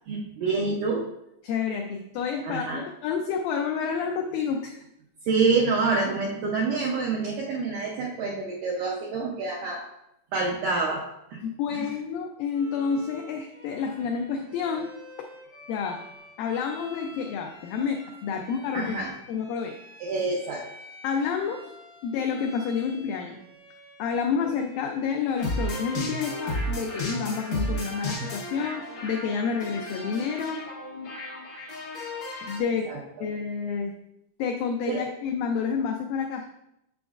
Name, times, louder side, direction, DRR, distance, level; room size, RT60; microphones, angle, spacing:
voice 1, 0.1-1.1 2.4-2.8 5.2-9.9 10.3-11.1 11.3-11.4 11.7-11.9 18.7-19.1 20.0-20.7 32.9-33.3 34.9-35.1, right 4 dB, 85° right, -2 dB, 1.9 m, -27 dB
voice 2, 1.4-4.8 11.4-14.9 15.7-16.0 16.4-18.9 19.3-19.8 21.0-21.7 22.0-23.4 24.0-30.6 32.4-32.9 33.2-33.9 34.4-36.5, left 6 dB, 90° left, 3 dB, 2.0 m, -29 dB
Bowed string instrument, 12.5-27.7, left 1 dB, 40° right, 0.7 m, -48 dB
sound 1, 25.4-32.6, left 1 dB, 70° left, 1.1 m, -33 dB
7.0 x 5.9 x 2.4 m, 0.84 s
omnidirectional pair, 4.6 m